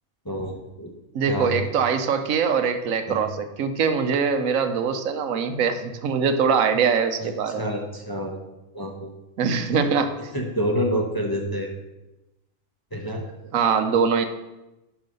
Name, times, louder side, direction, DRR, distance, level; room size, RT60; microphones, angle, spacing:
voice 1, 0.2-0.9 1.3-1.5 3.1-3.2 7.2-7.3 7.6-8.4 8.7-9.1 9.8-9.9 10.3-11.7 12.9-13.2, equal, 20° left, 1 dB, 0.9 m, -28 dB
voice 2, 1.1-7.7 9.4-10.1 13.5-14.2, right 6 dB, 80° right, 8 dB, 1.2 m, -23 dB
10.5 x 4.9 x 5.3 m, 1.0 s
omnidirectional pair, 1.4 m